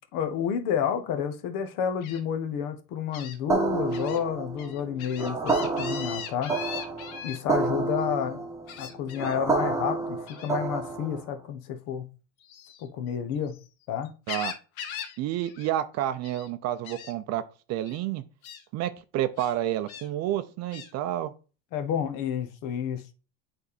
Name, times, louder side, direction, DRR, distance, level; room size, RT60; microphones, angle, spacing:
voice 1, 0.1-6.5 7.2-8.4 8.8-12.1 12.8-13.6 13.9-14.1 21.7-23.1, left 8 dB, 50° left, 1.1 m, -30 dB
Gull seagull, 2.0-2.2 3.1-3.4 3.9-4.2 4.6-7.4 8.7-9.4 10.3-10.6 12.4-13.7 14.0-15.2 15.4-15.7 16.0-16.5 16.9-17.1 17.9-18.0 18.4-18.6 19.4-20.1 20.7-20.9, left 8 dB, 80° left, 1.2 m, -40 dB
sound 1, 3.5-11.3, right 3 dB, 5° right, 1.3 m, -29 dB
voice 2, 15.2-17.4 17.7-18.2 18.7-21.3, right 12 dB, 40° right, 0.6 m, -29 dB
8.1 x 3.6 x 4.1 m
supercardioid pair, 140°, 41 cm